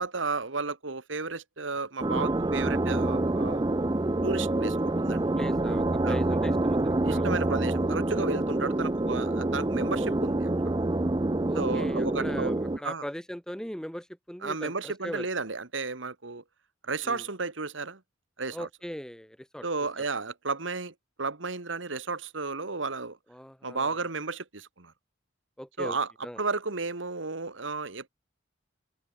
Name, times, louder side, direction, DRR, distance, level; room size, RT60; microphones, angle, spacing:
voice 1, 0.0-3.7 4.2-5.2 6.0-6.2 7.0-10.8 11.5-12.5 12.8-13.0 14.4-16.4 16.9-18.0 18.4-18.7 19.6-23.2 23.6-24.9 25.8-26.1 26.4-28.1, right 4 dB, 80° right, 1.9 m, -33 dB
sound 1, 2.0-12.8, right 2 dB, 20° right, 0.5 m, -27 dB
voice 2, 5.4-7.3 11.5-15.3 17.0-17.2 18.5-19.6 20.0-20.1 23.3-23.9 25.6-26.4, equal, 5° left, 1.2 m, -40 dB
open air
head